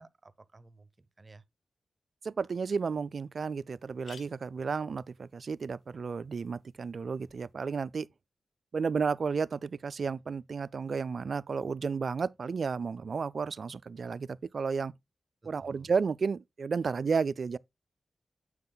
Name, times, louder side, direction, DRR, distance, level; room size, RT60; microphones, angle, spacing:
voice 1, 0.0-1.4 15.4-15.9, right 3 dB, 40° right, 0.8 m, -55 dB
voice 2, 2.2-8.1 8.7-14.9 15.4-17.6, right 5 dB, 70° right, 0.3 m, -32 dB
sound 1, 2.5-2.6 3.0-3.1 3.3-3.4 3.8-7.5, left 5 dB, 80° left, 1.1 m, -59 dB
9.5 x 7.7 x 2.2 m
cardioid pair, 50°, 0 cm